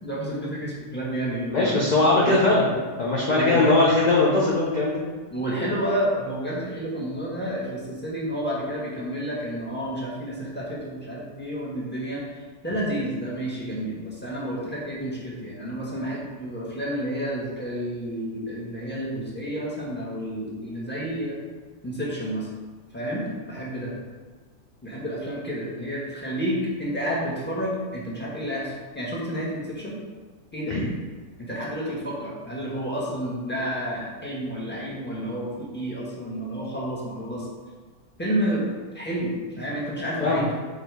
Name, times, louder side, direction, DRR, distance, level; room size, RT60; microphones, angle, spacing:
voice 1, 0.0-2.4 3.3-3.7 5.3-21.4 21.8-22.5 22.9-23.9 24.8-30.0 30.5-30.8 31.4-37.5 38.2-38.6 38.9-40.4, equal, 5° left, -6 dB, 1.4 m, -30 dB
voice 2, 1.5-2.7 3.0-5.0 30.7-30.8 40.2-40.5, left 2 dB, 35° left, -5 dB, 0.8 m, -20 dB
4.9 x 4.4 x 4.8 m, 1.4 s
omnidirectional pair, 1.6 m